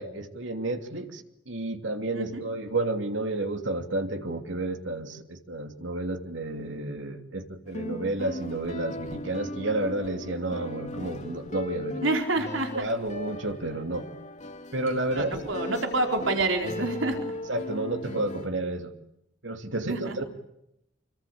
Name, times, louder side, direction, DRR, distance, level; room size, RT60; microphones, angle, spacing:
voice 1, 0.0-12.0 12.7-14.1 14.7-15.5 17.5-18.9 19.4-20.2, right 2 dB, 70° right, 6 dB, 3.0 m, -31 dB
sound 1, 7.7-18.5, left 1 dB, 40° left, 2.2 m, -38 dB
voice 2, 12.0-12.9 15.1-17.3 19.9-20.2, right 2 dB, 85° right, 4 dB, 4.4 m, -28 dB
27.0 x 24.5 x 8.7 m, 0.82 s
head